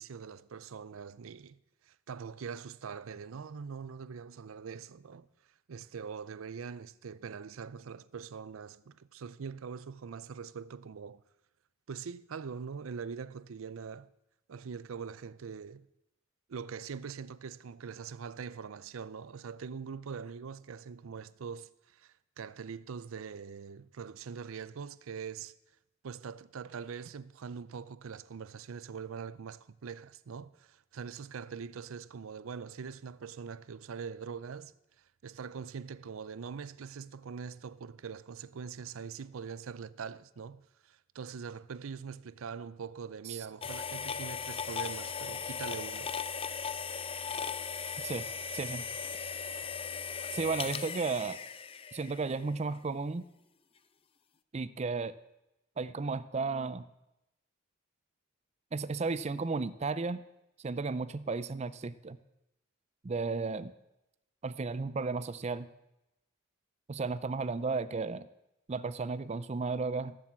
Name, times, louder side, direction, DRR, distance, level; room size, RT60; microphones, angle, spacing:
voice 1, 0.0-1.6 1.8-5.3 5.7-11.2 11.9-14.1 14.5-15.9 16.5-25.5 26.0-34.7 35.2-46.1, right 6 dB, 90° right, 0.5 m, -43 dB
sound 1, 43.6-52.5, left 6 dB, 25° left, 0.5 m, -38 dB
voice 2, 48.5-48.8 50.3-51.4 51.9-53.2 54.5-55.1 55.8-56.8 58.7-60.2 60.6-62.2 63.0-63.7 64.4-65.7 66.9-68.3 68.7-70.2, right 4 dB, 30° right, 0.4 m, -34 dB
15.0 x 7.4 x 7.5 m
head